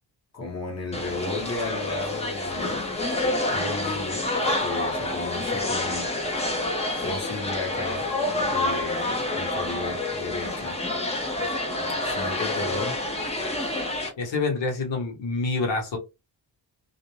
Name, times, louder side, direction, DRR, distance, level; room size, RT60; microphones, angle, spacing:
voice 1, 0.3-2.9 3.5-4.3 4.6-6.1 7.0-8.1 8.5-10.8 12.0-13.0, left 3 dB, 35° left, 1.0 m, -34 dB
sound 1, 0.9-14.1, left 2 dB, 15° left, 0.5 m, -28 dB
voice 2, 14.2-16.0, left 3 dB, 85° left, 1.1 m, -27 dB
2.4 x 2.1 x 3.0 m
wide cardioid pair, 155°, 44 cm